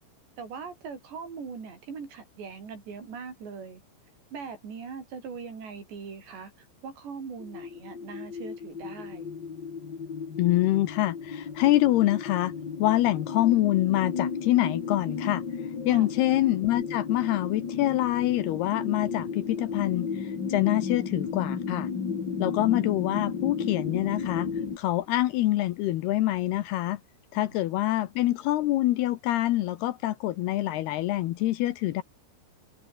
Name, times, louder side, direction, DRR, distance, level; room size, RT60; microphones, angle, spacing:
voice 1, 0.4-3.8 4.3-9.3 15.9-16.1 27.3-27.8, right 5 dB, 70° right, 8.0 m, -41 dB
sound 1, 7.4-24.8, left 6 dB, 40° left, 1.7 m, -34 dB
voice 2, 10.4-12.5 12.8-15.4 15.8-21.9 22.4-24.5 24.8-27.0 27.3-32.0, left 15 dB, 75° left, 2.7 m, -25 dB
omnidirectional pair, 5.1 m